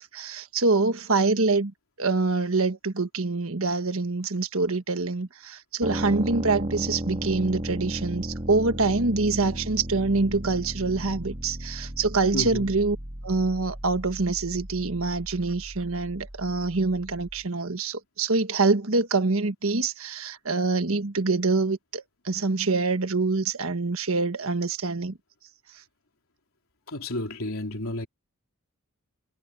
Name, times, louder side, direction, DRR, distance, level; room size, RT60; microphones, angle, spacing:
voice 1, 0.0-1.7 2.0-13.0 13.2-25.2, right 3 dB, 70° right, 1.4 m, -25 dB
sound 1, 5.8-17.4, right 1 dB, 30° right, 1.9 m, -35 dB
voice 2, 12.3-12.7 26.9-28.1, left 1 dB, 70° left, 3.7 m, -31 dB
head